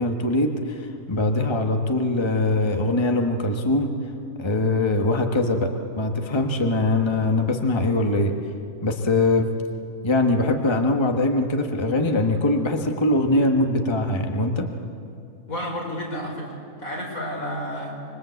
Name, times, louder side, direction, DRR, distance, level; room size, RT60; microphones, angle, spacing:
voice 1, 0.0-3.9 4.4-8.3 8.8-9.5 10.0-14.7, left 2 dB, 20° left, 3 dB, 1.4 m, -22 dB
voice 2, 15.5-16.5 16.8-17.9, equal, 75° left, -2 dB, 5.5 m, -31 dB
26.0 x 22.5 x 8.2 m, 2.5 s
omnidirectional pair, 1.5 m